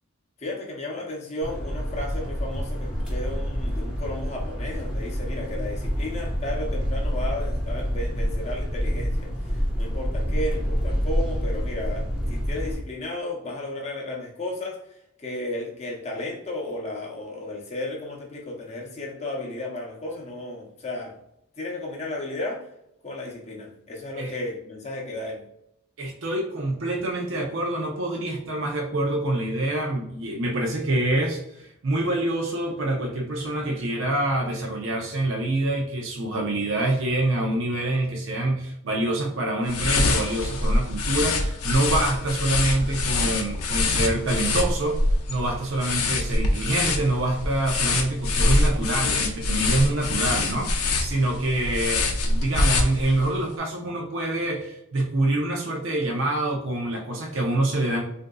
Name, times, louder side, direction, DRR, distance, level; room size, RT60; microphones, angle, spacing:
voice 1, 0.4-14.8 15.2-21.2 21.6-22.7 23.0-25.4, left 1 dB, 30° left, 0.6 m, -34 dB
sound 1, 1.4-12.8, equal, 5° right, 0.7 m, -27 dB
voice 2, 26.0-45.0 45.3-58.0, right 1 dB, 60° right, 0.6 m, -26 dB
sound 2, 39.7-53.4, left 2 dB, 85° left, 0.5 m, -25 dB
3.6 x 2.6 x 2.2 m
head